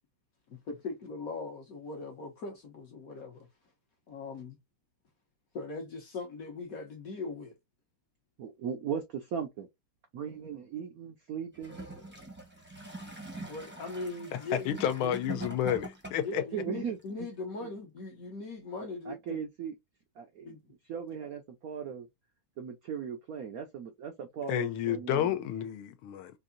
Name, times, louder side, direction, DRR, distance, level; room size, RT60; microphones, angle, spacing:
voice 1, 0.5-3.5 4.1-4.6 5.5-7.5 13.0-13.2 13.5-15.1 16.2-19.4 20.4-20.6, left 3 dB, 60° left, 0.9 m, -40 dB
voice 2, 8.4-9.7 10.1-11.8 16.5-17.0 17.6-17.7 19.1-19.7 20.2-20.6 20.9-22.1 22.6-25.4, right 7 dB, 80° right, 0.8 m, -38 dB
Gurgling / Toilet flush, 11.5-16.4 17.3-17.4, right 2 dB, 10° right, 0.5 m, -43 dB
voice 3, 14.7-16.4 24.5-26.3, left 10 dB, 80° left, 1.5 m, -30 dB
4.6 x 2.6 x 2.5 m
omnidirectional pair, 2.4 m